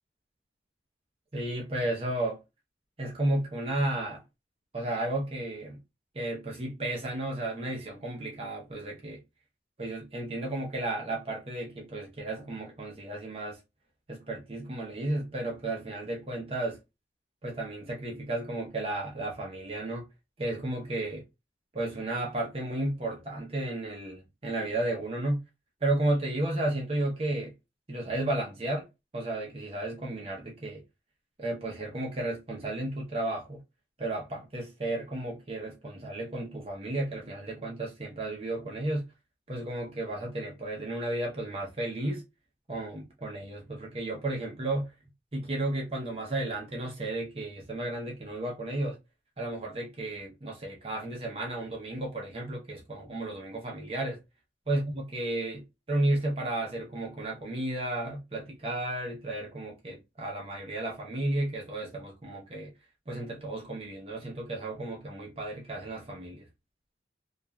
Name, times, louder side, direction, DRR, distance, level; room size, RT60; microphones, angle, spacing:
voice 1, 1.3-2.4 3.0-4.2 4.7-5.8 6.1-9.2 9.8-13.6 14.1-16.8 17.4-20.0 20.4-21.2 21.7-25.4 25.8-27.5 27.9-28.9 29.1-30.8 31.4-33.6 34.0-39.1 39.5-42.2 42.7-44.9 45.3-49.0 49.4-54.2 54.7-62.7 63.1-66.5, right 1 dB, 30° right, 0.7 m, -33 dB
2.9 x 2.4 x 2.2 m
head